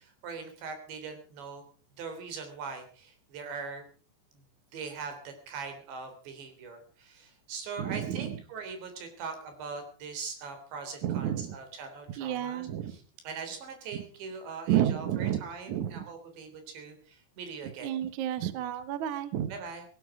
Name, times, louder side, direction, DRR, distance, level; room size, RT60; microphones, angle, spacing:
voice 1, 0.0-1.6 2.0-3.8 4.7-17.9 19.5-19.9, right 5 dB, 80° right, 7 dB, 5.8 m, -41 dB
voice 2, 7.8-8.3 11.0-11.5 12.2-13.0 14.7-15.4 15.7-15.9 17.8-19.5, right 11 dB, 65° right, 12 dB, 2.0 m, -30 dB
17.5 x 16.5 x 4.9 m, 0.40 s
omnidirectional pair, 5.0 m